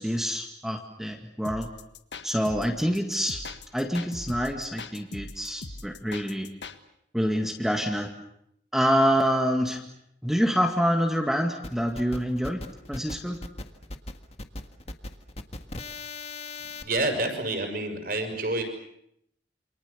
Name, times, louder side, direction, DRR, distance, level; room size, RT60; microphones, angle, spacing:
voice 1, 0.0-1.7 2.2-3.4 3.7-6.5 7.1-8.1 8.7-9.8 10.2-12.6 12.9-13.4, equal, ahead, 2 dB, 2.0 m, -26 dB
sound 1, 1.4-6.8, left 3 dB, 80° left, 1.7 m, -40 dB
sound 2, 11.6-16.8, left 2 dB, 35° left, 1.7 m, -39 dB
voice 2, 16.8-18.6, right 2 dB, 55° right, 5 dB, 6.4 m, -28 dB
28.5 x 27.0 x 6.9 m, 0.75 s
head